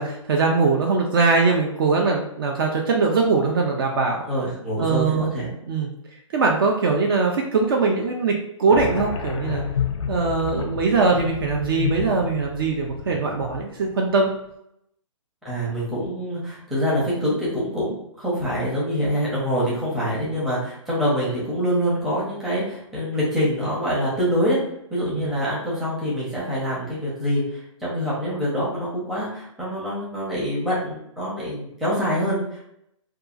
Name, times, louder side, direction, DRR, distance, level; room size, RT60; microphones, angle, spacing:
voice 1, 0.0-4.2 4.8-5.3 5.7-5.9 6.3-9.6 10.1-14.3 20.2-20.4 25.1-25.4, right 4 dB, 45° right, 1 dB, 0.4 m, -21 dB
voice 2, 4.3-5.5 15.4-24.6 24.9-32.7, equal, ahead, -9 dB, 0.6 m, -25 dB
sound 1, 8.7-13.9, left 7 dB, 65° left, 0.4 m, -30 dB
2.7 x 2.3 x 2.4 m, 0.79 s
hypercardioid pair, 155°, 17 cm